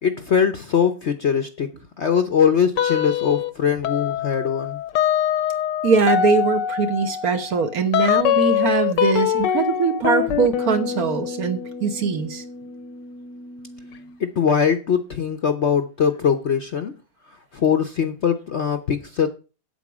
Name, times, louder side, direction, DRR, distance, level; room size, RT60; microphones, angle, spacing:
voice 1, 0.0-1.7 2.0-4.8 14.2-16.9 17.5-19.3, left 7 dB, 55° left, 0.8 m, -21 dB
sound 1, 2.8-3.5 3.8-14.2, left 10 dB, 80° left, 1.5 m, -24 dB
voice 2, 5.8-12.4, right 5 dB, 60° right, 1.5 m, -22 dB
8.2 x 7.9 x 6.1 m
omnidirectional pair, 1.9 m